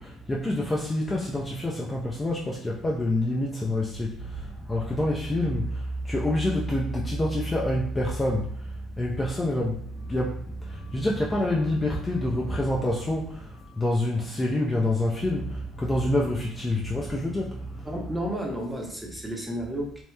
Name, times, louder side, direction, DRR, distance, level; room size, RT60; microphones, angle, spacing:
voice 1, 0.0-18.0, left 1 dB, 20° left, -3 dB, 0.4 m, -27 dB
voice 2, 17.8-20.0, equal, 5° right, -1 dB, 0.8 m, -32 dB
2.8 x 2.1 x 2.2 m, 0.63 s
hypercardioid pair, 65°, 0 cm